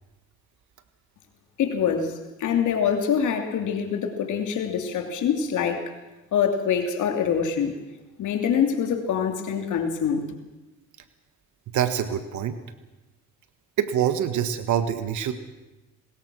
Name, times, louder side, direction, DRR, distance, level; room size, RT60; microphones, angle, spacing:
voice 1, 1.6-5.9 6.3-7.8 8.2-10.3, left 7 dB, 75° left, 5 dB, 2.8 m, -25 dB
voice 2, 11.7-12.6 13.8-15.3, right 9 dB, 75° right, 10 dB, 1.6 m, -25 dB
24.5 x 20.0 x 6.2 m, 1.1 s
cardioid pair, 90°, 30 cm